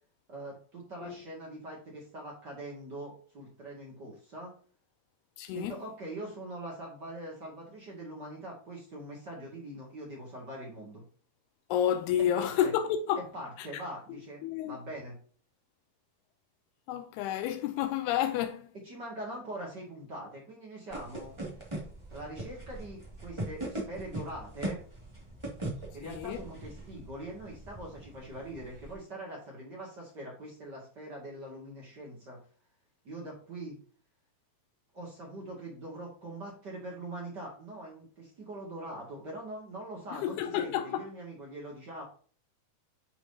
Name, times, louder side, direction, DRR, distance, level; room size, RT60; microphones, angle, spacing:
voice 1, 0.3-4.5 5.5-11.0 12.3-12.7 13.2-15.2 18.8-21.3 22.1-24.8 25.9-32.4 33.0-33.8 34.9-42.0, right 1 dB, 35° right, 2.1 m, -43 dB
voice 2, 5.4-5.7 11.7-13.2 13.6-13.7 14.4-14.8 16.9-18.7 26.0-26.4 40.2-41.0, left 10 dB, 85° left, 2.6 m, -30 dB
sound 1, 20.9-28.9, right 1 dB, 15° right, 1.2 m, -41 dB
10.0 x 4.8 x 2.8 m
omnidirectional pair, 4.5 m